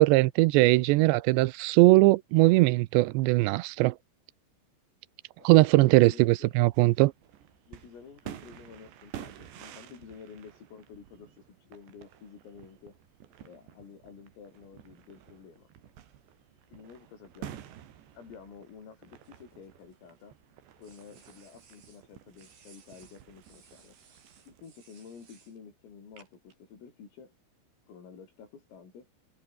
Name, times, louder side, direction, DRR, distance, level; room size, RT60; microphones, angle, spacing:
voice 1, 0.0-3.9 5.4-7.1, right 20 dB, 85° right, 2.6 m, -20 dB
voice 2, 5.8-6.6 7.7-13.0 13.4-15.7 16.7-17.6 18.2-20.4 20.8-24.0 24.5-27.3 27.9-29.1, left 6 dB, 85° left, 9.0 m, -50 dB
sound 1, 6.7-24.7, right 10 dB, 65° right, 4.2 m, -50 dB
sound 2, 19.2-20.2 20.8-22.0 22.4-25.6 26.2-26.5, right 5 dB, 50° right, 6.9 m, -60 dB
omnidirectional pair, 5.8 m